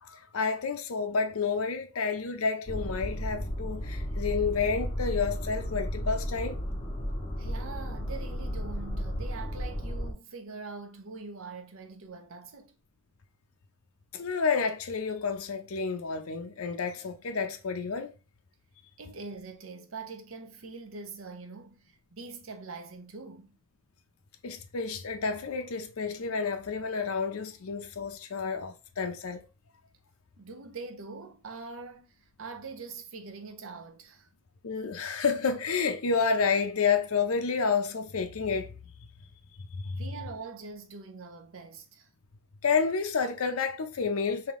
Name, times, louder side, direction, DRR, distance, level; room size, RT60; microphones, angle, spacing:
voice 1, 0.0-6.6 14.1-18.1 24.4-29.4 34.6-38.7 39.7-40.0 42.6-44.5, left 5 dB, 85° left, 0.6 m, -30 dB
sound 1, 2.7-10.1, equal, 25° left, 0.7 m, -34 dB
voice 2, 7.4-12.7 19.0-23.5 30.4-34.3 40.0-42.1, right 4 dB, 70° right, 0.7 m, -43 dB
3.5 x 2.7 x 3.6 m
head